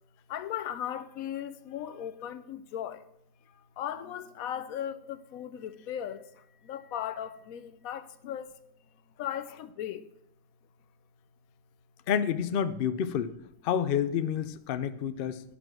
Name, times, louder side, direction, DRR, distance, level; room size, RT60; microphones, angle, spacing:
voice 1, 0.3-3.0 3.5-8.5 9.2-10.0, left 10 dB, 80° left, 1.1 m, -37 dB
voice 2, 12.1-13.3 13.6-15.4, left 8 dB, 60° left, 0.6 m, -29 dB
11.0 x 5.2 x 6.1 m
omnidirectional pair, 1.5 m